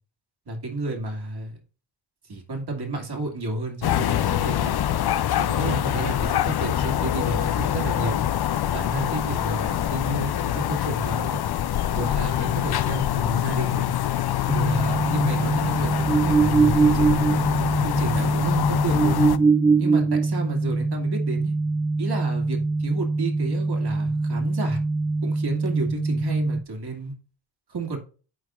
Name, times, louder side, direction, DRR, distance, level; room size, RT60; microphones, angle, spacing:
voice 1, 0.5-1.6 2.3-4.8 5.4-8.2 8.7-11.4 11.9-14.0 14.5-19.3 19.8-21.5 22.0-24.8 25.2-27.1 27.7-28.0, right 3 dB, 50° right, 2 dB, 2.6 m, -31 dB
sound 1, 3.8-19.4, left 11 dB, 50° left, 0.6 m, -25 dB
sound 2, 14.5-26.6, right 3 dB, 5° right, 0.5 m, -23 dB
12.0 x 4.4 x 2.5 m, 0.36 s
supercardioid pair, 40°, 50 cm